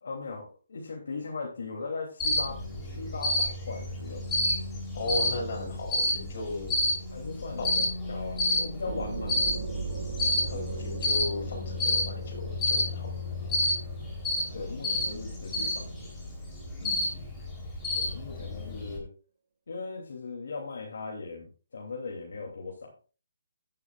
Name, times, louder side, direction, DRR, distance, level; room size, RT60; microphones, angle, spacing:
voice 1, 0.0-4.2 7.1-9.4 14.5-16.1 17.9-19.1 19.7-22.9, left 4 dB, 70° left, -1 dB, 3.1 m, -38 dB
Cricket, 2.2-19.0, left 1 dB, 10° left, 3.8 m, -30 dB
voice 2, 4.9-6.8 7.6-7.7 10.5-13.1 16.8-17.3, left 2 dB, 45° left, 1 dB, 6.6 m, -36 dB
sound 1, 8.8-16.2, right 5 dB, 45° right, 2.6 m, -39 dB
13.5 x 11.0 x 2.5 m, 0.36 s
hypercardioid pair, 170°, 0 cm